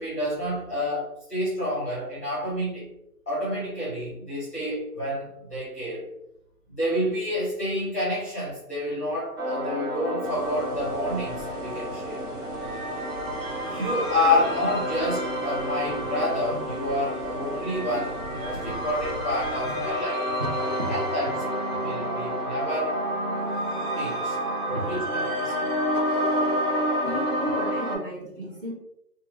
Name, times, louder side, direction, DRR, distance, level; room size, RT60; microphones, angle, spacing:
voice 1, 0.0-2.9 3.3-6.1 6.7-12.2 13.6-20.3 20.9-21.4 21.8-23.0 23.9-24.3 24.7-25.5, left 1 dB, 10° left, -9 dB, 0.6 m, -29 dB
sound 1, 9.4-28.0, equal, 60° right, 1.3 m, -29 dB
sound 2, 10.2-19.9, right 2 dB, 90° right, 1.0 m, -41 dB
voice 2, 20.4-21.0 24.7-25.2 26.9-28.7, right 1 dB, 35° right, -3 dB, 0.6 m, -34 dB
2.7 x 2.3 x 2.8 m, 0.81 s
hypercardioid pair, 155°, 46 cm